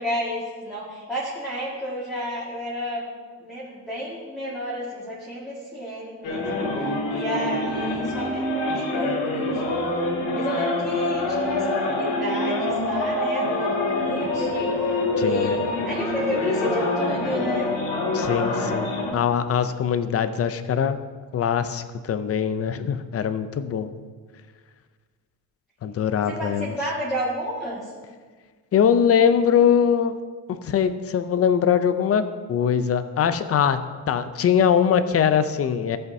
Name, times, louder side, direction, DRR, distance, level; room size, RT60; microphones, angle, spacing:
voice 1, 0.0-3.1 3.4-6.8 7.1-9.6 10.3-17.7 26.3-27.9, equal, ahead, -8 dB, 1.8 m, -31 dB
sound 1, 6.2-19.1, left 2 dB, 85° left, 2.4 m, -25 dB
voice 2, 15.2-15.6 18.1-21.0 21.3-23.9 25.8-26.7 28.7-30.2 30.5-32.2 32.5-36.0, left 8 dB, 35° left, 11 dB, 0.5 m, -22 dB
14.5 x 7.9 x 2.7 m, 1.5 s
cardioid pair, 135°, 45 cm